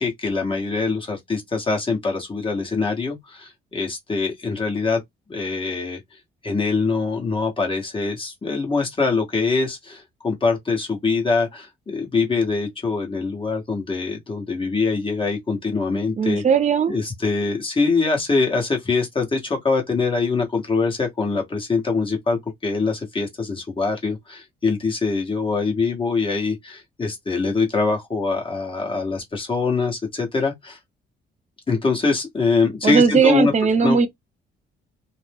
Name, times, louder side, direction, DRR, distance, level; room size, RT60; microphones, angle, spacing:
voice 1, 0.0-5.0 5.3-6.0 6.4-16.4 16.9-30.8 31.7-33.5 33.8-34.1, left 4 dB, 25° left, 1.1 m, -23 dB
voice 2, 16.2-17.0 32.8-34.1, right 5 dB, 35° right, 0.7 m, -18 dB
2.5 x 2.1 x 3.4 m
cardioid pair, 90°, 20 cm